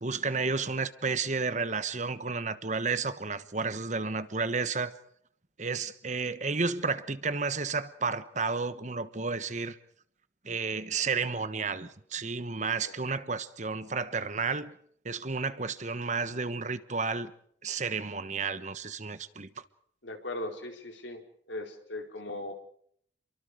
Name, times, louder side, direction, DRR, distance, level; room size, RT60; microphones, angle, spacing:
voice 1, 0.0-4.9 5.6-9.8 10.4-14.8 15.0-17.3 17.6-19.5, right 4 dB, 40° right, 1.2 m, -32 dB
voice 2, 20.0-21.2 21.5-22.5, left 1 dB, 80° left, 4.3 m, -38 dB
28.5 x 23.5 x 5.0 m
head